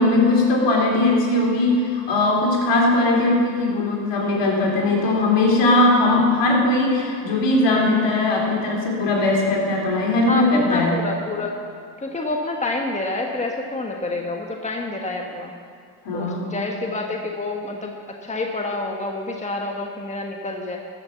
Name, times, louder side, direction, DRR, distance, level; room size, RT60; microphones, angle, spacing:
voice 1, 0.0-11.0 16.0-16.6, left 2 dB, 65° left, -2 dB, 3.6 m, -19 dB
voice 2, 10.3-11.5 12.0-15.5 16.1-20.8, left 2 dB, 15° left, 1 dB, 1.5 m, -28 dB
14.0 x 6.8 x 7.2 m, 2.2 s
supercardioid pair, 65°, 47 cm